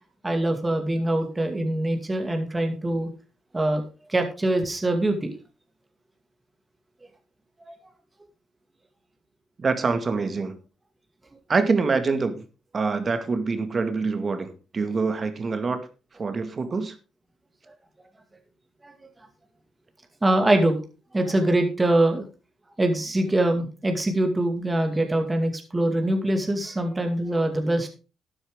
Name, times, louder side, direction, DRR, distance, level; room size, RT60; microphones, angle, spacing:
voice 1, 0.2-3.1 3.5-3.8 4.1-5.3 7.6-7.7 18.8-18.9 20.2-20.8 21.1-22.2 22.8-27.9, right 1 dB, 20° right, 4 dB, 2.2 m, -23 dB
voice 2, 9.6-10.5 11.5-12.4 12.7-15.8 16.2-16.9, right 4 dB, 35° right, 9 dB, 2.1 m, -25 dB
12.5 x 9.8 x 3.8 m, 0.32 s
cardioid pair, 90°, 0 cm